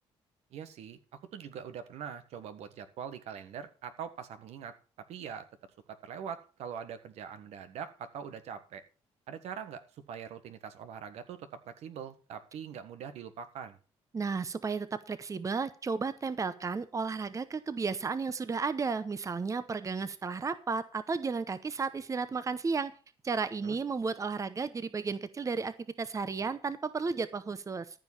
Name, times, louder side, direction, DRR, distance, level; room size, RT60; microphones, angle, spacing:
voice 1, 0.5-1.0 1.3-4.7 5.1-5.5 5.9-8.8 9.3-13.8 23.6-23.8, right 8 dB, 75° right, 10 dB, 1.5 m, -43 dB
voice 2, 14.1-22.9 23.2-27.9, right 4 dB, 30° right, 14 dB, 0.9 m, -33 dB
14.0 x 5.4 x 7.1 m, 0.37 s
cardioid pair, 75°, 11 cm